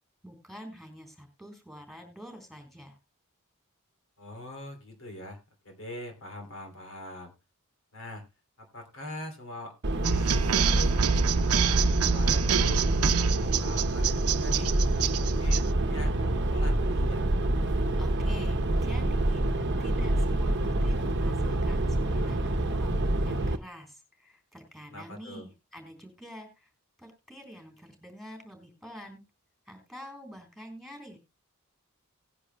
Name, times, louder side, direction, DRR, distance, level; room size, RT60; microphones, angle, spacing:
voice 1, 0.2-3.0 18.0-23.0 23.2-26.7 27.0-29.2 29.7-31.2, equal, ahead, 4 dB, 3.8 m, -47 dB
voice 2, 4.2-5.4 5.6-7.3 7.9-8.3 8.6-12.9 13.4-17.3 24.9-25.5, left 1 dB, 60° left, 5 dB, 2.8 m, -42 dB
sound 1, 9.8-23.6, right 1 dB, 50° right, 0.8 m, -27 dB
sound 2, 10.0-15.6, right 7 dB, 85° right, 0.7 m, -27 dB
18.5 x 10.0 x 2.2 m, 0.25 s
head